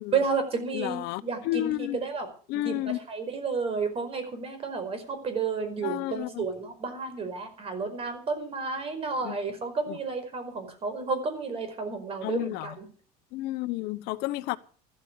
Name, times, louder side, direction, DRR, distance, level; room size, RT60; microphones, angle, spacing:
voice 1, 0.1-2.3 2.5-12.9, right 4 dB, 35° right, 5.0 m, -31 dB
voice 2, 0.7-2.0 2.5-3.0 5.8-6.4 9.2-9.4 9.9-10.0 12.2-12.8 13.3-14.6, left 16 dB, 70° left, 1.1 m, -31 dB
14.0 x 13.5 x 6.5 m
cardioid pair, 135°, 18 cm